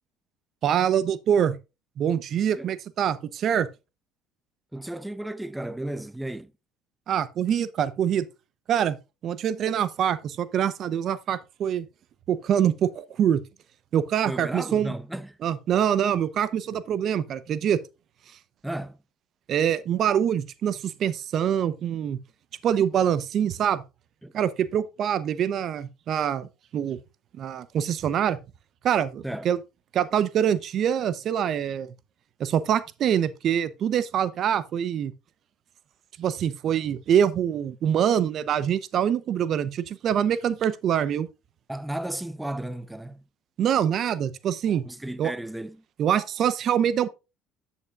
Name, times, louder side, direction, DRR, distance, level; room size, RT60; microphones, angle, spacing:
voice 1, 0.6-1.6 2.0-3.7 7.1-8.2 8.7-9.0 9.2-11.9 12.3-13.4 13.9-14.9 15.4-17.8 19.5-22.2 22.6-23.8 24.3-27.0 27.4-28.4 28.8-29.6 29.9-31.9 32.4-35.1 36.2-41.3 43.6-44.8 45.2-45.3 46.0-47.1, right 9 dB, 55° right, 0.7 m, -25 dB
voice 2, 4.7-6.5 14.2-15.4 18.6-19.0 24.2-24.3 29.2-29.5 41.7-43.2 44.8-45.8, right 1 dB, 5° right, 0.7 m, -34 dB
9.2 x 8.3 x 2.4 m
supercardioid pair, 80°, 0 cm